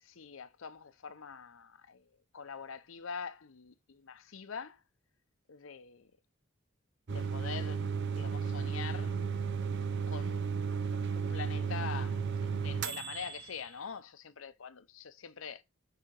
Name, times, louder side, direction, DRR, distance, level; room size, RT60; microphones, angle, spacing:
voice 1, 0.0-4.8 5.5-6.1 7.1-9.2 10.1-10.4 11.2-15.6, left 6 dB, 65° left, 0.6 m, -44 dB
sound 1, 7.1-13.6, right 6 dB, 55° right, 0.6 m, -34 dB
4.9 x 4.7 x 4.5 m
head